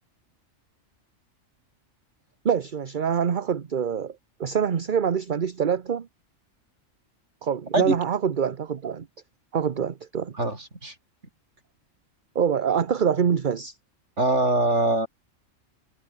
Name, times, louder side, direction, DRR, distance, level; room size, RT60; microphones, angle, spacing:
voice 1, 2.4-6.1 7.4-9.1 9.5-10.3 12.3-13.8, right 7 dB, 45° right, 1.0 m, -25 dB
voice 2, 10.4-10.9 14.2-15.1, right 2 dB, 60° right, 5.6 m, -23 dB
omnidirectional pair, 1.4 m